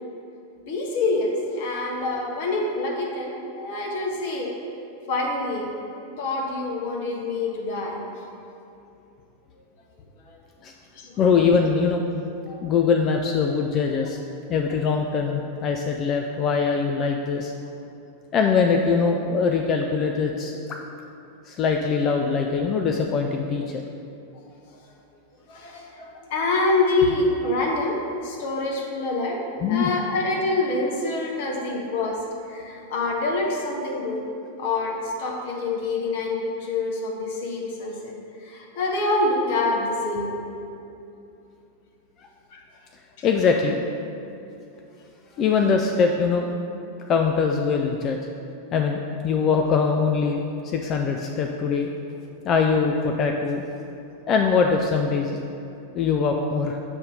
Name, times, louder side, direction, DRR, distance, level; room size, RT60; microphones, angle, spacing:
voice 1, 0.7-4.5 5.1-5.7 6.2-8.0 10.3-10.4 10.9-11.2 12.5-12.6 25.5-32.2 32.5-34.3 34.6-38.1 38.4-40.3 42.5-42.6 43.2-43.3, left 2 dB, 50° left, -1 dB, 0.8 m, -26 dB
voice 2, 11.2-12.0 12.6-14.2 14.5-17.5 18.3-20.8 21.5-23.8 29.6-29.9 43.2-43.8 45.4-46.5 47.1-48.2 48.7-50.4 50.7-51.9 52.4-53.6 54.3-55.4 55.9-56.8, left 5 dB, 30° left, 3 dB, 0.3 m, -22 dB
7.0 x 2.7 x 5.1 m, 2.8 s
figure-of-eight pair, 90°, 0 cm